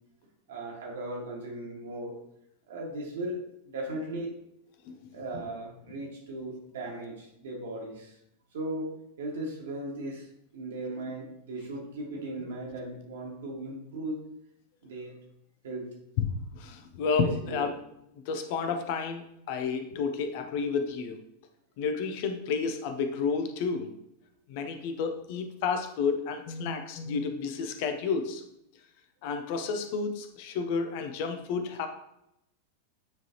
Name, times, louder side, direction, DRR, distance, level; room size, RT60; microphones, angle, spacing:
voice 1, 0.5-2.2 2.7-3.4 3.7-4.3 5.1-8.1 8.5-10.3 10.5-14.2 14.8-15.2 15.6-15.9 17.5-17.7, right 1 dB, 60° right, -1 dB, 1.8 m, -37 dB
voice 2, 16.2-17.8 18.3-21.2 21.8-23.9 24.5-28.4 29.2-31.9, left 5 dB, 50° left, 7 dB, 0.7 m, -31 dB
8.9 x 3.9 x 2.9 m, 0.80 s
figure-of-eight pair, 90°, 0 cm